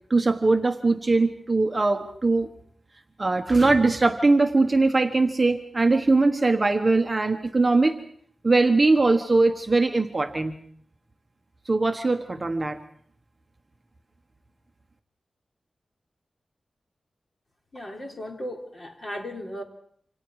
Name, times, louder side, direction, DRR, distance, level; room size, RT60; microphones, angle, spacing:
voice 1, 0.1-2.5 3.2-8.0 8.4-10.6 11.6-12.8, right 3 dB, 25° right, 5 dB, 1.3 m, -21 dB
voice 2, 17.7-19.6, equal, 30° left, 2 dB, 3.6 m, -36 dB
28.0 x 26.5 x 4.9 m, 0.63 s
wide cardioid pair, 145°, 0 cm